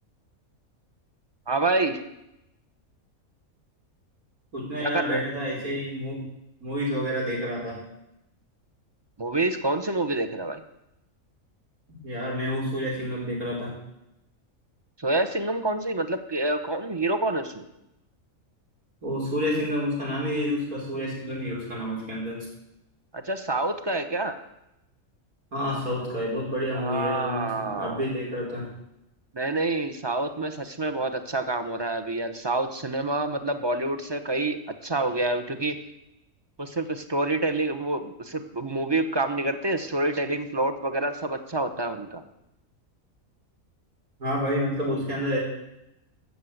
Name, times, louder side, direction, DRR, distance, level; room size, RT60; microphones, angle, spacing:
voice 1, 1.5-2.0 4.8-5.2 9.2-10.6 15.0-17.6 23.1-24.4 26.7-28.0 29.3-35.8 36.6-42.2, right 2 dB, 20° right, 8 dB, 0.9 m, -27 dB
voice 2, 4.5-6.2 6.6-7.8 12.0-13.7 19.0-22.4 25.5-28.7 44.2-45.4, equal, 90° right, -4 dB, 5.3 m, -29 dB
14.0 x 6.7 x 8.0 m, 0.86 s
omnidirectional pair, 1.5 m